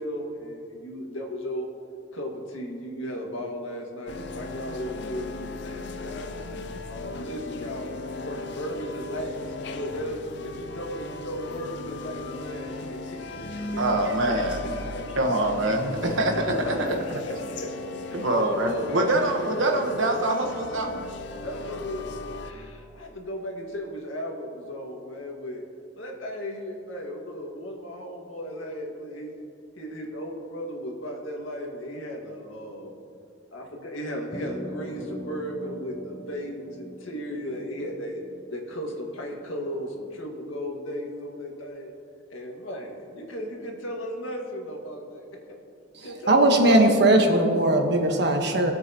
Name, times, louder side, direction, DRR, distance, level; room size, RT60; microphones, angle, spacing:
voice 1, 0.0-1.7 2.1-6.3 6.9-13.8 14.3-14.4 14.9-15.3 16.3-17.7 18.0-19.2 21.4-25.6 25.9-29.3 29.8-33.0 33.5-38.2 38.5-41.9 42.3-45.2 46.0-46.8, equal, 90° left, 0 dB, 1.9 m, -35 dB
sound 1, 4.1-22.5, left 2 dB, 60° left, 0.6 m, -37 dB
voice 2, 13.8-14.6 15.2-16.9 18.1-21.0, right 1 dB, 80° right, 3 dB, 1.2 m, -25 dB
sound 2, 34.3-38.9, left 1 dB, 20° left, 0.6 m, -40 dB
voice 3, 45.9-48.7, right 1 dB, 60° right, 3 dB, 1.3 m, -19 dB
21.5 x 8.0 x 3.0 m, 2.6 s
head